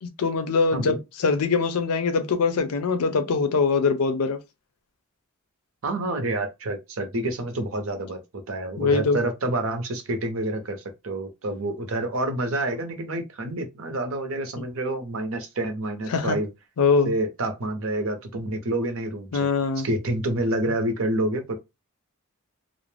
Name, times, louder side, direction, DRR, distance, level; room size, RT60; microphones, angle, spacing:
voice 1, 0.0-4.4 8.8-9.2 16.1-16.4 16.8-17.1 19.3-19.9, left 4 dB, 85° left, 0.5 m, -23 dB
voice 2, 5.8-8.2 8.5-16.5 17.0-19.5 19.8-21.5, right 1 dB, 65° right, 0.7 m, -28 dB
2.4 x 2.0 x 3.2 m
head